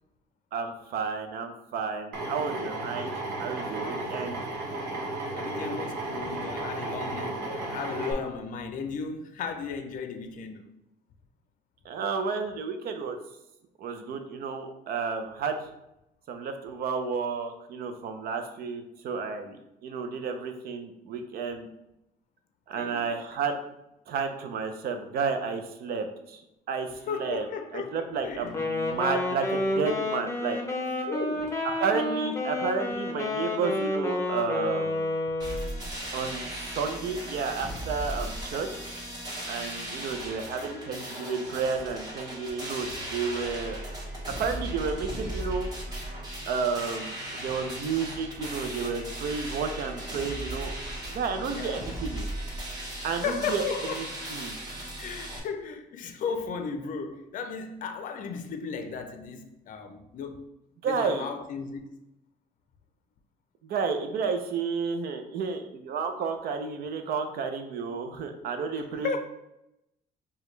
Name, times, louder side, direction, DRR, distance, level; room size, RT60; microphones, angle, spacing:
voice 1, 0.5-3.1 3.4-4.4 11.8-13.2 13.8-15.7 16.3-21.7 22.7-23.6 24.1-26.4 26.7-27.5 27.7-31.1 31.8-35.1 36.1-38.8 39.5-43.8 44.4-46.0 46.5-50.7 51.1-52.3 53.0-53.6 54.0-54.1 54.3-54.6 60.8-61.3 63.6-69.2, right 5 dB, 65° right, 0.6 m, -31 dB
Drill, 2.1-8.1, right 2 dB, 90° right, 1.0 m, -34 dB
voice 2, 3.8-4.2 5.3-10.7 22.8-23.1 27.1-28.6 31.0-31.6 40.6-40.9 43.0-43.1 51.5-51.8 53.0-54.1 55.0-60.5 60.8-62.0 69.0-69.2, left 5 dB, 50° left, 0.5 m, -35 dB
Wind instrument woodwind instrument, 28.5-35.7, left 2 dB, 15° left, 0.7 m, -30 dB
sound 1, 35.4-55.4, right 1 dB, 25° right, 1.2 m, -37 dB
4.9 x 2.3 x 3.2 m
cardioid pair, 110°, 17 cm